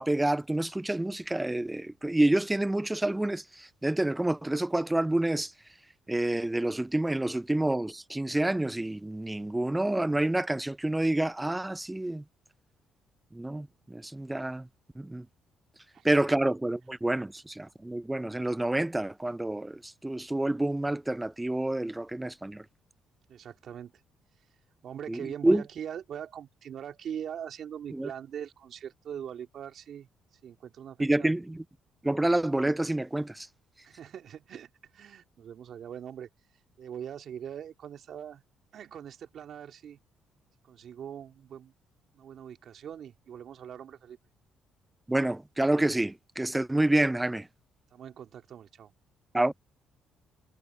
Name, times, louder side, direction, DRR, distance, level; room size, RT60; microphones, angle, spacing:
voice 1, 0.0-5.5 6.1-12.2 13.3-14.7 15.0-15.3 16.0-22.6 25.1-25.6 27.9-28.1 31.0-31.6 32.0-33.5 45.1-47.5 49.3-49.5, right 1 dB, 10° right, 0.5 m, -28 dB
voice 2, 23.3-23.9 24.8-30.1 30.4-31.3 33.8-36.3 36.8-38.4 38.7-40.0 40.6-41.7 42.1-44.2 47.9-48.9, right 9 dB, 65° right, 2.7 m, -42 dB
supercardioid pair, 65°, 0 cm